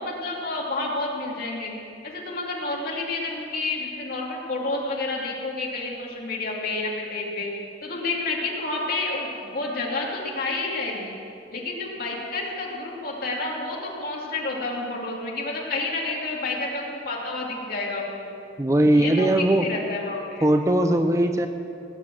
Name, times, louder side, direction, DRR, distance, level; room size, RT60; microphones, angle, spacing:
voice 1, 0.0-1.7 2.0-7.5 7.8-11.1 11.5-18.3 18.9-20.5, left 2 dB, 55° left, -2 dB, 2.7 m, -29 dB
voice 2, 18.6-19.7 20.4-21.5, right 1 dB, 15° right, 7 dB, 0.6 m, -19 dB
18.5 x 8.5 x 7.7 m, 2.5 s
head